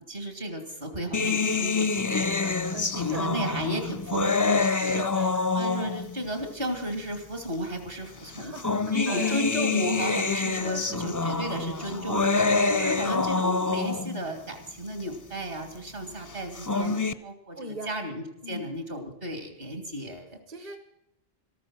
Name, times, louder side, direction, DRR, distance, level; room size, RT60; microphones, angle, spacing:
voice 1, 0.1-2.5 2.9-5.3 5.6-8.5 8.9-20.4, equal, 65° right, 6 dB, 2.9 m, -34 dB
sound 1, 1.1-6.2 7.1-7.2 8.3-14.2 16.4-17.1, left 4 dB, 25° left, 0.4 m, -26 dB
voice 2, 2.7-3.3 4.9-5.5 8.4-9.4 10.5-11.1 12.7-13.0 17.6-17.9 18.4-18.6 20.5-20.8, right 3 dB, 40° right, 9 dB, 1.0 m, -40 dB
14.0 x 13.5 x 6.3 m, 0.87 s
omnidirectional pair, 1.1 m